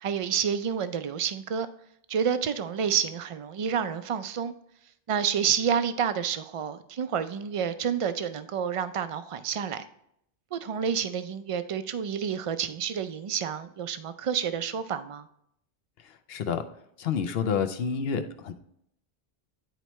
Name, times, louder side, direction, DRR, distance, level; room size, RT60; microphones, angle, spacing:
voice 1, 0.0-1.7 2.1-4.5 5.1-9.9 10.5-15.3, right 7 dB, 55° right, 11 dB, 0.3 m, -29 dB
voice 2, 16.0-16.6 17.0-18.5, left 6 dB, 75° left, 10 dB, 0.9 m, -29 dB
10.0 x 4.4 x 3.1 m, 0.73 s
omnidirectional pair, 1.0 m